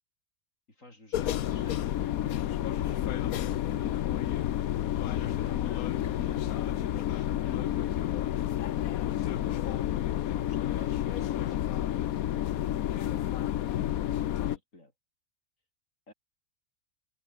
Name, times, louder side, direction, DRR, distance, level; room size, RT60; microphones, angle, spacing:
voice 1, 0.7-3.8 5.0-8.2 9.1-11.8 13.7-14.9 16.1-16.2, left 1 dB, 55° left, 7.4 m, -52 dB
sound 1, 1.1-14.6, left 12 dB, 70° left, 1.2 m, -30 dB
omnidirectional pair, 1.6 m